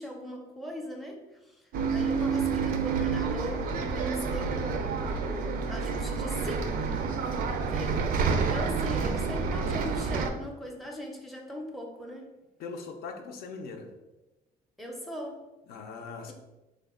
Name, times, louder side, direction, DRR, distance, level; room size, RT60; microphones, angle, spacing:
voice 1, 0.0-6.8 7.6-12.3 14.8-15.5, equal, ahead, 0 dB, 0.5 m, -40 dB
Bus, 1.7-10.3, right 5 dB, 60° right, 0.4 m, -29 dB
voice 2, 12.6-13.9 15.7-16.3, left 4 dB, 65° left, 4 dB, 0.4 m, -40 dB
3.1 x 2.1 x 3.6 m, 1.1 s
cardioid pair, 110°, 17 cm